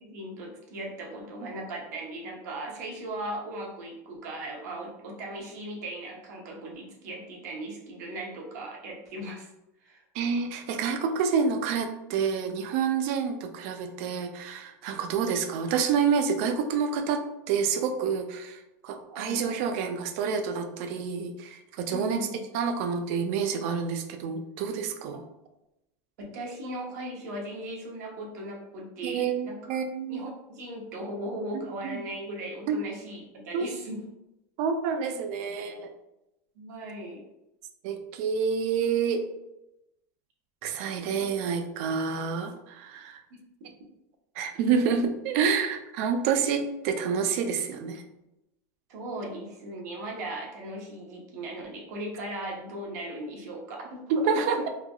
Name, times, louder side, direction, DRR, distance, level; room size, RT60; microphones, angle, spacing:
voice 1, 0.0-9.5 9.8-10.0 19.1-19.4 21.9-22.4 26.2-29.8 30.1-34.0 36.6-37.2 41.2-41.3 48.9-54.7, right 1 dB, 75° right, 0 dB, 0.8 m, -38 dB
voice 2, 10.2-22.3 22.5-25.2 29.0-30.2 31.5-32.0 32.7-32.8 33.5-33.7 34.6-35.9 37.8-39.2 40.6-43.2 44.4-48.0 54.1-54.7, right 6 dB, 55° right, 7 dB, 0.4 m, -28 dB
3.2 x 2.3 x 2.2 m, 0.92 s
supercardioid pair, 155°, 9 cm